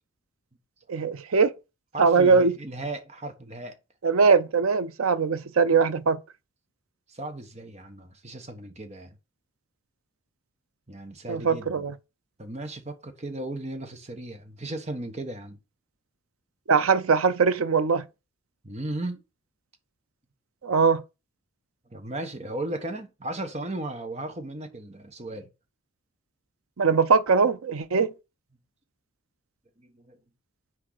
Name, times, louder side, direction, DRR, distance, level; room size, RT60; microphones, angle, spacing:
voice 1, 0.9-1.5 2.0-2.5 4.0-6.2 11.3-11.9 16.7-18.0 20.6-21.0 26.8-28.1, right 5 dB, 85° right, 0.6 m, -21 dB
voice 2, 1.9-3.8 7.1-9.2 10.9-11.9 12.4-15.6 18.6-19.2 21.9-25.5 29.8-30.2, right 2 dB, 30° right, 1.2 m, -36 dB
6.2 x 4.6 x 6.5 m
head